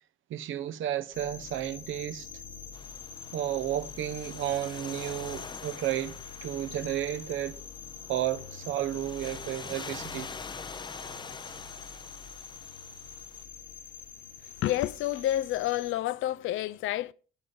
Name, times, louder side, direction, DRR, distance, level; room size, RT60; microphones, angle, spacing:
voice 1, 0.3-2.3 3.3-7.6 8.1-10.3, right 12 dB, 80° right, 0.7 m, -32 dB
sound 1, 1.1-15.9, left 7 dB, 45° left, 1.3 m, -45 dB
sound 2, 2.7-13.4, left 4 dB, 25° left, 0.5 m, -45 dB
voice 2, 14.6-17.1, left 14 dB, 80° left, 0.5 m, -29 dB
11.5 x 11.0 x 3.7 m
cardioid pair, 90°, 20 cm